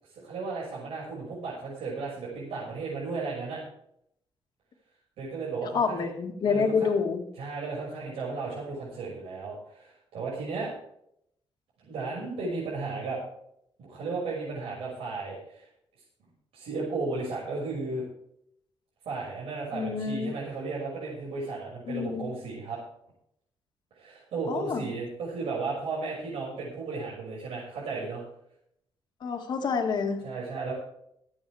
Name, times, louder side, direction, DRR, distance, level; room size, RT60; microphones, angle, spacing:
voice 1, 0.1-3.6 5.2-6.1 6.4-6.9 7.4-10.7 11.8-13.2 13.8-15.7 16.5-18.0 19.0-22.8 23.9-28.2 30.2-30.7, right 3 dB, 80° right, -7 dB, 6.2 m, -34 dB
voice 2, 5.7-7.2 19.7-20.3 21.9-22.3 24.5-24.8 29.2-30.2, left 5 dB, 50° left, 4 dB, 2.0 m, -28 dB
25.0 x 8.6 x 3.5 m, 0.73 s
wide cardioid pair, 175°, 10 cm